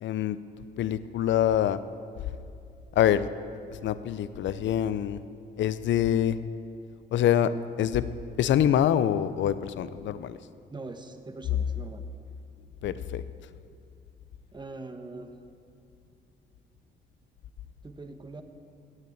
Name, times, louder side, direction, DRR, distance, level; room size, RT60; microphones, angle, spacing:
voice 1, 0.0-0.4 0.8-1.8 3.0-3.3 3.8-5.2 5.6-6.4 7.1-7.5 7.8-8.0 8.4-10.4 12.8-13.2, left 10 dB, 70° left, 14 dB, 0.6 m, -25 dB
voice 2, 10.7-12.0 14.5-15.3 17.8-18.4, right 3 dB, 20° right, 7 dB, 1.2 m, -42 dB
16.0 x 6.7 x 8.6 m, 2.5 s
cardioid pair, 90°, 20 cm